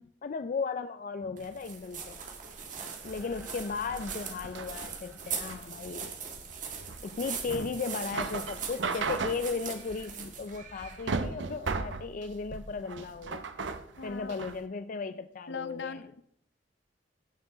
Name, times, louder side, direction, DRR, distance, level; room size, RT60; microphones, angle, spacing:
voice 1, 0.2-2.2 3.0-6.1 7.0-13.4 14.0-16.0, left 4 dB, 45° left, 10 dB, 0.4 m, -36 dB
sound 1, 1.4-11.3, right 6 dB, 45° right, 1.9 m, -41 dB
sound 2, 3.0-6.6, right 1 dB, 15° right, 2.0 m, -57 dB
sound 3, 3.0-14.6, right 4 dB, 90° right, 0.8 m, -37 dB
voice 2, 14.0-14.4 15.5-16.2, left 4 dB, 70° left, 12 dB, 0.7 m, -40 dB
16.0 x 7.2 x 3.8 m, 0.70 s
head